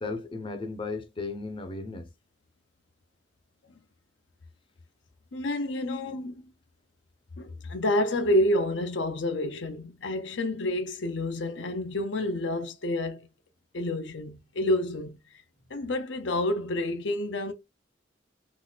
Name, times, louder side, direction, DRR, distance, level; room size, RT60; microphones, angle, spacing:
voice 1, 0.0-2.1, left 3 dB, 30° left, 0.6 m, -35 dB
voice 2, 5.3-6.4 7.4-13.3 13.7-15.2 15.7-17.5, left 1 dB, 85° left, 0.6 m, -29 dB
3.9 x 2.4 x 2.2 m
head